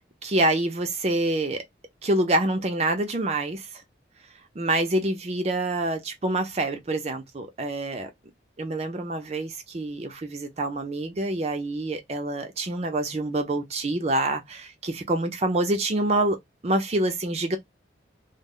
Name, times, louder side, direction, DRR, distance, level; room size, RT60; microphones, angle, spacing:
voice 1, 0.2-1.6 2.0-3.7 4.6-8.1 8.6-16.4 16.6-17.6, right 2 dB, 35° right, 0.4 m, -26 dB
2.0 x 2.0 x 3.6 m
head